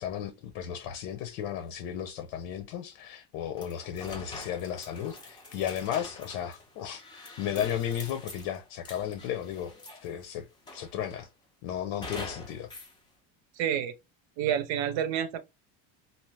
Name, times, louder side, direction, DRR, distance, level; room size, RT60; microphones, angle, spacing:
voice 1, 0.0-9.7 10.0-10.5 10.7-11.3 11.6-12.7, left 10 dB, 90° left, 0.8 m, -34 dB
sound 1, 3.6-10.2 10.7-11.3 12.0-12.9, left 2 dB, 10° left, 0.3 m, -45 dB
voice 2, 13.6-13.9 14.4-15.4, right 9 dB, 65° right, 0.6 m, -28 dB
2.8 x 2.1 x 3.2 m
cardioid pair, 155°, 49 cm